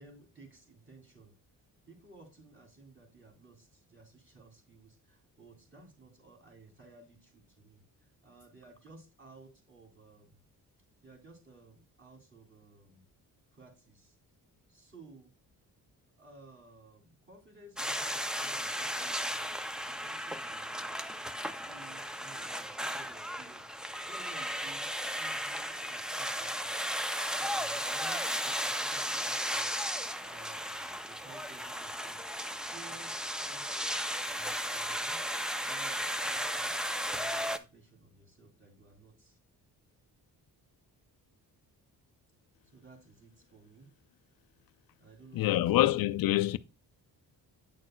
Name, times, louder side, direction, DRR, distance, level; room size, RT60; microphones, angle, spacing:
voice 1, 0.0-1.4 1.9-10.4 11.0-13.1 13.5-14.2 14.7-15.3 16.2-19.5 19.9-21.1 21.5-24.9 25.2-26.8 27.3-33.7 34.3-35.2 35.6-39.4 42.7-43.9 45.0-45.8, right 3 dB, 30° right, 3.0 m, -56 dB
sound 1, 17.8-37.6, equal, ahead, 0.4 m, -35 dB
voice 2, 45.3-46.6, left 15 dB, 70° left, 0.5 m, -26 dB
8.9 x 6.4 x 2.2 m
cardioid pair, 105°, 37 cm